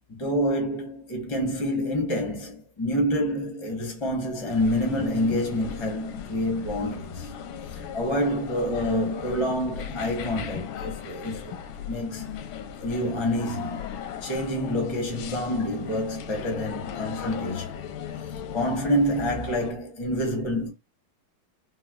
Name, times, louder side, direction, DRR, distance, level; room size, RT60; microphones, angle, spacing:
voice 1, 0.1-7.3 7.9-11.6 11.8-12.2 12.8-13.9 14.2-17.7 18.5-20.7, equal, 40° left, 0.4 m, -27 dB
sound 1, 4.5-19.7, left 8 dB, 85° left, 1.4 m, -38 dB
4.1 x 2.2 x 2.3 m
omnidirectional pair, 2.2 m